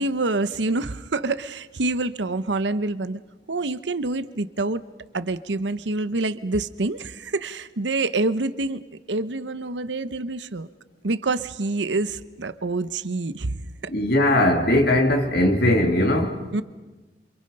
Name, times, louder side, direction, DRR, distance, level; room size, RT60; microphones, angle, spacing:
voice 1, 0.0-3.2 3.5-4.8 5.1-8.8 9.1-10.7 11.0-13.7 16.5-16.6, right 2 dB, 80° right, 13 dB, 0.9 m, -26 dB
voice 2, 13.9-16.4, left 1 dB, 60° left, 2 dB, 3.1 m, -19 dB
28.5 x 27.5 x 5.5 m, 1.2 s
head